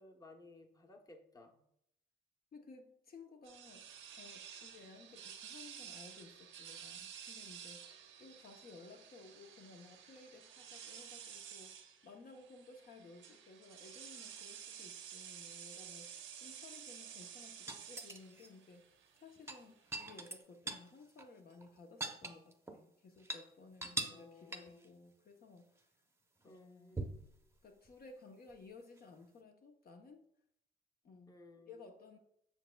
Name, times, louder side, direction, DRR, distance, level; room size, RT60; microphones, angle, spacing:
voice 1, 0.0-1.6 24.0-24.8 26.4-27.0 31.3-31.7, left 2 dB, 20° left, 4 dB, 0.9 m, -58 dB
voice 2, 2.5-3.9 4.2-7.8 8.2-16.1 16.4-25.9 26.4-27.2 27.6-30.2 31.0-31.3 31.7-32.2, left 3 dB, 50° left, 3 dB, 0.8 m, -57 dB
sound 1, 3.4-20.3, right 8 dB, 80° right, 0.9 m, -52 dB
sound 2, 17.7-18.5 19.4-20.9 21.2-21.3 21.6-22.8 23.2-23.4 23.8-24.3 24.5-24.8 27.0-27.3 29.0-29.1, right 2 dB, 15° right, 0.8 m, -42 dB
7.3 x 6.2 x 2.3 m, 0.75 s
cardioid pair, 90°, 20 cm